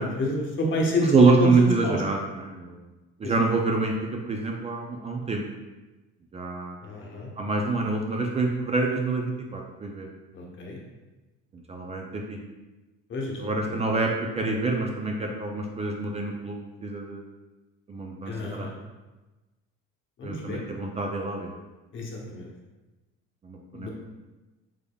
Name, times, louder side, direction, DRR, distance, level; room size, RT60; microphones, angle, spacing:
voice 1, 0.0-1.1 1.4-2.0 3.2-3.3 6.8-7.3 10.3-10.8 13.1-13.7 18.3-18.7 20.2-20.6 21.9-22.5 23.7-23.9, left 1 dB, 40° left, -1 dB, 0.9 m, -29 dB
voice 2, 1.0-2.8 3.2-3.9 4.2-5.4 6.3-6.8 7.4-10.1 11.7-12.4 13.4-16.6 16.8-17.2 17.9-18.7 20.2-21.5 23.4-23.9, right 3 dB, 20° right, 1 dB, 0.4 m, -26 dB
3.5 x 3.5 x 2.3 m, 1.1 s
supercardioid pair, 100°, 29 cm